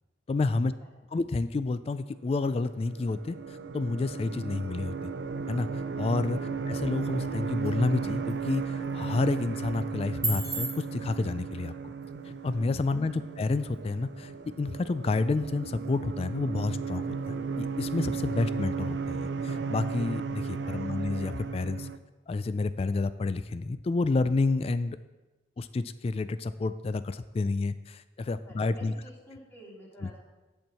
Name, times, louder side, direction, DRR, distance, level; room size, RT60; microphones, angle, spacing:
voice 1, 0.3-0.7 1.1-5.1 5.5-5.7 6.0-11.9 12.2-21.9 22.3-25.0 25.6-28.9, left 3 dB, 35° left, 13 dB, 0.3 m, -30 dB
sound 1, 2.5-22.0, right 5 dB, 75° right, 0.5 m, -35 dB
sound 2, 6.8-20.8, right 2 dB, 20° right, 1.9 m, -44 dB
voice 2, 13.0-13.5 28.4-30.2, equal, 15° left, -4 dB, 2.4 m, -52 dB
10.5 x 4.5 x 6.9 m, 1.2 s
head